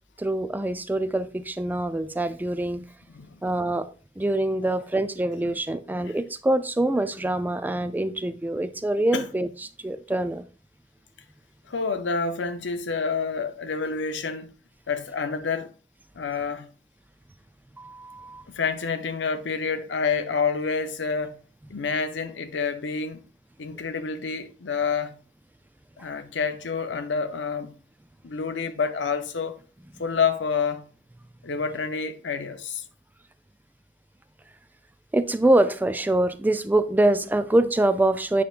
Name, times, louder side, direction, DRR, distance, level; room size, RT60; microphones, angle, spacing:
voice 1, 0.2-2.8 3.4-3.9 4.2-9.5 9.8-10.5 17.8-18.5 35.1-38.4, right 1 dB, 10° right, 0.3 m, -24 dB
voice 2, 3.1-3.4 5.4-5.5 6.0-6.1 9.1-9.3 11.7-14.5 14.9-15.7 16.1-16.7 18.5-21.4 21.7-23.2 23.6-25.2 26.0-27.7 28.2-29.6 30.0-30.9 31.4-32.8, left 5 dB, 85° left, 0.7 m, -28 dB
8.5 x 5.7 x 2.4 m
head